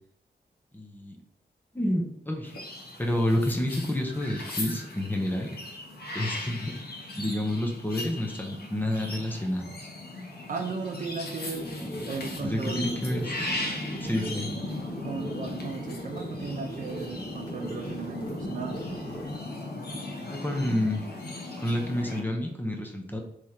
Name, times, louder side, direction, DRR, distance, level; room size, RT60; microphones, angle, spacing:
voice 1, 0.7-1.2 1.7-2.5 3.0-5.5 6.1-6.7 7.2-9.9 12.4-13.3 14.0-14.5 20.3-21.0 21.6-23.2, left 1 dB, 10° left, 1 dB, 0.7 m, -29 dB
sound 1, 2.4-22.2, left 2 dB, 65° left, 0.9 m, -38 dB
voice 2, 10.5-11.7 12.1-13.0 15.0-18.9, right 4 dB, 50° right, 4 dB, 0.6 m, -36 dB
sound 2, 11.5-19.3, equal, 25° left, 1.6 m, -39 dB
3.5 x 3.1 x 4.3 m, 0.74 s
wide cardioid pair, 140°, 17 cm